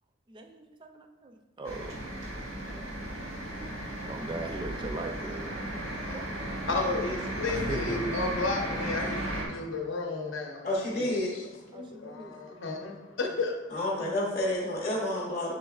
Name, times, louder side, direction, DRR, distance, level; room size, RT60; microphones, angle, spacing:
voice 1, 0.3-2.2 2.7-3.0 3.3-3.7 4.0-8.2 11.7-12.6 14.9-15.5, right 2 dB, 25° right, 5 dB, 0.4 m, -41 dB
sound 1, 1.6-9.5, right 1 dB, 85° right, 1.0 m, -35 dB
voice 2, 6.6-10.6 11.0-13.5, left 3 dB, 75° left, 2 dB, 0.7 m, -33 dB
voice 3, 10.6-11.3 13.7-15.5, left 1 dB, 40° left, -4 dB, 0.7 m, -29 dB
6.4 x 3.5 x 2.3 m, 1.1 s
head